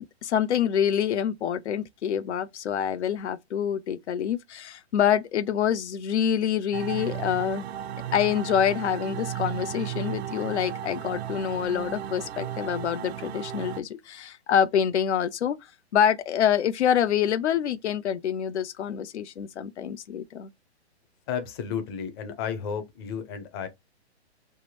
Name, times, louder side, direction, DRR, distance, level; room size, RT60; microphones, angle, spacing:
voice 1, 0.0-7.6 8.1-20.5, left 9 dB, 90° left, 0.5 m, -26 dB
sound 1, 6.7-13.8, right 11 dB, 70° right, 0.5 m, -35 dB
voice 2, 21.3-23.7, left 7 dB, 25° left, 0.5 m, -32 dB
3.4 x 2.1 x 2.9 m
hypercardioid pair, 145°, 33 cm